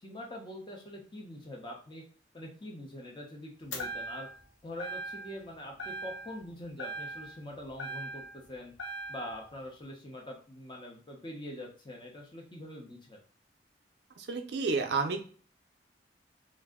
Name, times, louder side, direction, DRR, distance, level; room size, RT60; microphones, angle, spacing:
voice 1, 0.0-2.0 2.3-4.3 4.6-8.7 9.1-13.2, left 1 dB, 25° left, 0 dB, 0.6 m, -44 dB
sound 1, 3.7-4.5 4.8-5.5 5.8-6.5 6.8-8.4 8.8-9.4, right 2 dB, 90° left, 0.8 m, -40 dB
voice 2, 14.2-15.2, right 4 dB, 65° right, 4 dB, 0.4 m, -30 dB
2.5 x 2.0 x 3.5 m, 0.43 s
head